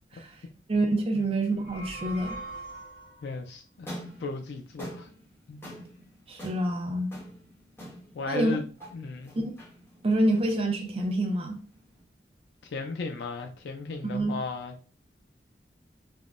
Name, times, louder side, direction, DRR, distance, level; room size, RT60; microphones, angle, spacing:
voice 1, 0.7-2.4 6.3-7.1 8.3-8.6 9.4-9.5 10.0-11.6 14.0-14.3, right 1 dB, 30° right, 0.4 m, -27 dB
sound 1, 1.5-3.4, right 2 dB, 45° left, 0.7 m, -41 dB
voice 2, 3.2-5.1 5.5-5.6 8.1-8.7 8.9-9.3 12.6-14.8, left 3 dB, 75° left, 0.4 m, -35 dB
sound 2, 3.7-12.0, equal, 15° left, 0.9 m, -46 dB
3.5 x 2.1 x 2.4 m
head